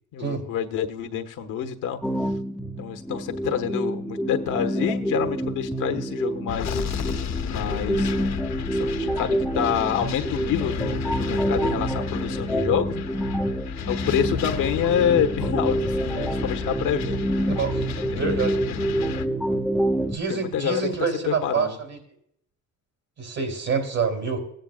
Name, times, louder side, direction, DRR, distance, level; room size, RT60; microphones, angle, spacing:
voice 1, 0.1-2.0 2.8-6.8 7.5-8.1 8.7-13.0 13.9-17.3 18.1-18.4 18.7-18.9 20.3-20.9 21.3-21.8, left 9 dB, 85° left, 6 dB, 1.2 m, -27 dB
sound 1, 2.0-20.2, right 1 dB, ahead, 0.5 m, -27 dB
sound 2, 6.5-19.3, left 7 dB, 65° left, 0.8 m, -32 dB
voice 2, 18.1-18.6 20.1-22.0 23.2-24.4, right 5 dB, 65° right, 4 dB, 3.2 m, -26 dB
16.5 x 9.0 x 2.4 m, 0.71 s
cardioid pair, 90°, 30 cm